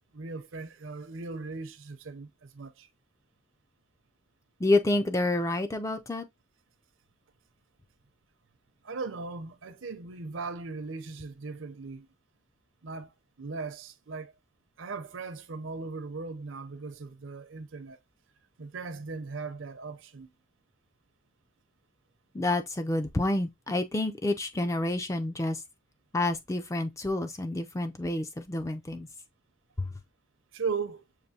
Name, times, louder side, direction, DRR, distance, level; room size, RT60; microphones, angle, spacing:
voice 1, 0.1-2.9 8.8-12.1 12.8-13.1 13.4-14.3 14.8-18.0 18.6-20.3 30.5-31.0, right 4 dB, 70° right, 0.6 m, -38 dB
voice 2, 4.6-6.3 22.3-25.6 26.1-29.1 29.8-29.9, left 2 dB, 15° left, 0.4 m, -28 dB
6.5 x 2.6 x 2.7 m
head